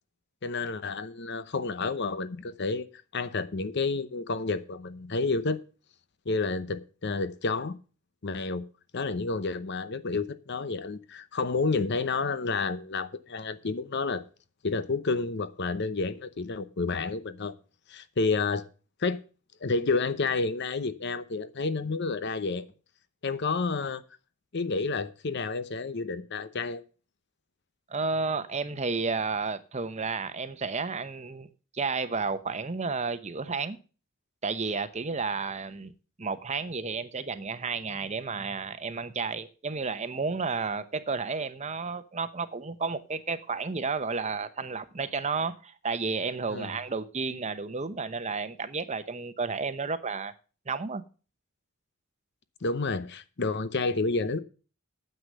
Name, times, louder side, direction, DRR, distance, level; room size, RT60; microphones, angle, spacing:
voice 1, 0.4-2.9 3.1-5.6 6.3-7.8 8.2-8.6 8.9-14.2 14.6-17.5 17.9-18.7 19.0-19.2 19.6-22.7 23.2-24.0 24.5-26.8 46.5-46.7 52.6-54.4, left 3 dB, 55° left, 0.8 m, -30 dB
voice 2, 27.9-31.5 31.7-33.8 34.4-35.9 36.2-50.3 50.7-51.0, right 4 dB, 35° right, 0.9 m, -32 dB
9.5 x 7.9 x 6.7 m
head